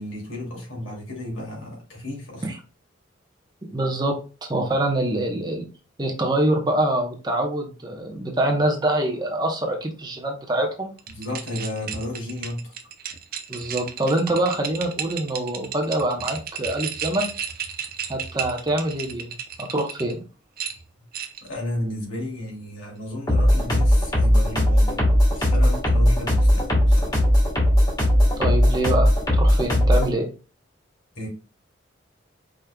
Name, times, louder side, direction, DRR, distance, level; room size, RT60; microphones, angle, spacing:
voice 1, 0.0-2.4 11.1-12.7 21.4-27.2 31.1-31.3, left 1 dB, 85° left, 2.6 m, -33 dB
voice 2, 3.7-5.7 6.0-10.9 13.5-17.3 18.1-20.2 28.4-30.3, right 1 dB, 20° right, 0.9 m, -25 dB
sound 1, 11.0-20.1 20.6-21.5, right 8 dB, 50° right, 0.7 m, -33 dB
sound 2, 23.3-30.1, equal, 20° left, 1.6 m, -18 dB
5.0 x 4.3 x 2.3 m
head